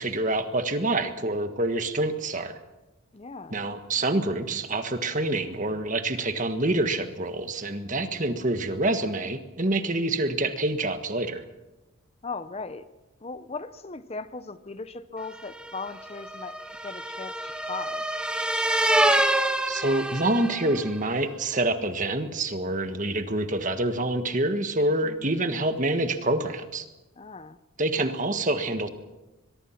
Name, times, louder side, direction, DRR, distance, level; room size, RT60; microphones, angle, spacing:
voice 1, 0.0-2.6 3.5-11.4 19.7-26.8 27.8-28.9, right 2 dB, 35° right, 8 dB, 1.6 m, -27 dB
voice 2, 3.1-3.6 8.1-8.3 12.2-12.9 13.2-16.6 16.8-18.1 25.0-25.4 27.2-27.6, left 4 dB, 30° left, 13 dB, 0.7 m, -38 dB
sound 1, 15.4-20.9, right 1 dB, 5° right, 1.2 m, -26 dB
22.5 x 22.5 x 5.9 m, 1.0 s
head